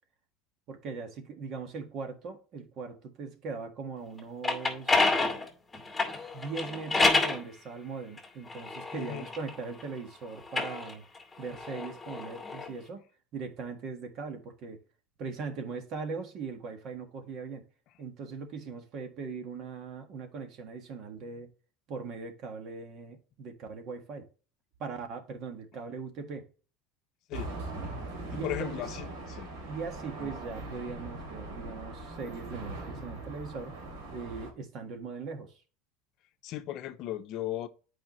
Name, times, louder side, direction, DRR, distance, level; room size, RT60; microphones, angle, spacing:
voice 1, 0.7-5.1 6.1-11.0 11.4-13.0 13.3-14.8 15.2-17.6 18.0-21.5 21.9-24.3 24.8-26.5 28.3-28.8 29.6-33.7 34.1-35.5, right 4 dB, 50° right, 1.6 m, -40 dB
sound 1, 4.2-7.4 8.2-9.9 10.4-12.7, left 3 dB, 5° left, 2.4 m, -29 dB
voice 2, 8.9-9.3 27.3-27.5 28.3-29.5 30.2-30.3 36.4-37.7, left 13 dB, 55° left, 0.7 m, -37 dB
sound 2, 27.3-34.5, right 2 dB, 80° right, 2.8 m, -41 dB
8.8 x 5.0 x 3.0 m
supercardioid pair, 125°, 0 cm